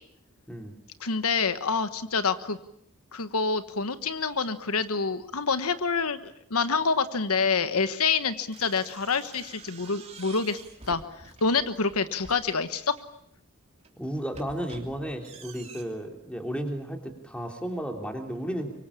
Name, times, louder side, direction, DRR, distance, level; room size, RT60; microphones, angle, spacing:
voice 1, 1.0-2.6 3.1-10.6 10.9-11.0 11.4-12.9, left 4 dB, 75° left, 11 dB, 1.3 m, -27 dB
sound 1, 8.5-13.1 13.7-15.8, right 4 dB, 30° right, 3.2 m, -48 dB
voice 2, 14.0-18.7, equal, 5° left, 3 dB, 3.4 m, -33 dB
25.0 x 24.0 x 8.6 m, 0.72 s
head